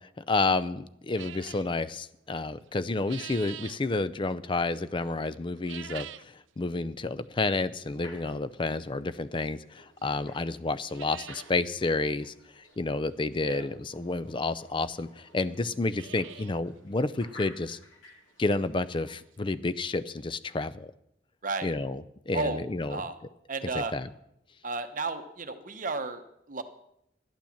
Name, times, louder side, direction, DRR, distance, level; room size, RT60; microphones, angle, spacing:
voice 1, 0.3-17.8 18.4-20.9 21.6-23.0 23.7-24.0, left 3 dB, 25° left, 15 dB, 0.4 m, -30 dB
sound 1, 1.1-1.7 2.7-3.8 5.5-6.3 6.8-6.9 7.7-7.8 9.5-9.6 10.0-10.1 10.3-10.4 10.7-11.5 11.9-12.0 12.2-12.3 13.8-13.9 14.7-14.8 15.0-15.1 15.6-16.6 17.0-17.1 17.6-17.7 18.1-18.2 19.9-20.0 20.2-20.3 20.7-20.8, right 11 dB, 75° right, 0.4 m, -44 dB
sound 2, 7.8-19.1, left 2 dB, 85° left, 3.6 m, -55 dB
voice 2, 22.3-23.2 23.5-23.9 24.6-26.6, right 3 dB, 45° right, 8 dB, 0.9 m, -33 dB
12.0 x 8.9 x 7.1 m, 0.78 s
head